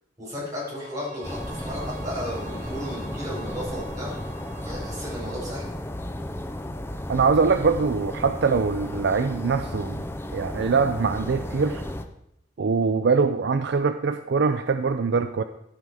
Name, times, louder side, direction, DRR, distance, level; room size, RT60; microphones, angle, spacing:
voice 1, 0.2-4.1 4.6-5.7, equal, 15° right, -6 dB, 4.8 m, -34 dB
Bowed string instrument, 0.6-5.8, right 4 dB, 40° right, 0.8 m, -46 dB
sound 1, 1.2-12.0, left 1 dB, 10° left, 0.5 m, -34 dB
voice 2, 7.1-10.0 10.3-11.8 12.6-15.4, right 5 dB, 55° right, 9 dB, 0.4 m, -23 dB
14.0 x 5.5 x 4.7 m, 0.79 s
head